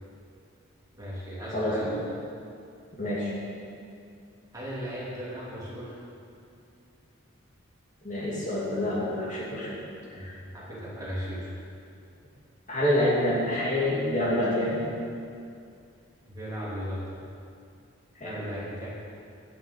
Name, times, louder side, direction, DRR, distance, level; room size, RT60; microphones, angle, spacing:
voice 1, 0.9-2.1 4.5-6.0 10.1-11.6 16.3-17.3 18.2-18.9, equal, 15° right, -8 dB, 2.8 m, -37 dB
voice 2, 1.5-1.9 3.0-3.3 8.0-9.7 10.2-10.3 12.7-14.9 18.2-18.4, left 1 dB, 35° left, -6 dB, 2.6 m, -27 dB
9.7 x 7.8 x 7.6 m, 2.4 s
head